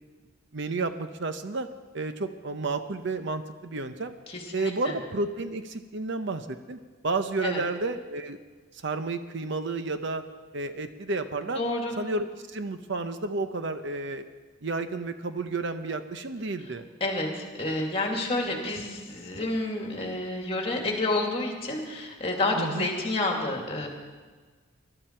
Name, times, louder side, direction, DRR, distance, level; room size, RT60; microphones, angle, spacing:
voice 1, 0.5-1.7 1.9-4.1 4.5-6.8 7.0-8.4 8.8-10.2 10.5-11.6 12.0-14.2 14.6-16.9 22.6-22.9, right 3 dB, 55° right, 9 dB, 0.7 m, -31 dB
voice 2, 4.3-4.9 7.4-7.6 11.6-11.9 17.0-23.9, left 2 dB, 25° left, 1 dB, 2.3 m, -29 dB
21.5 x 12.0 x 4.5 m, 1.4 s
head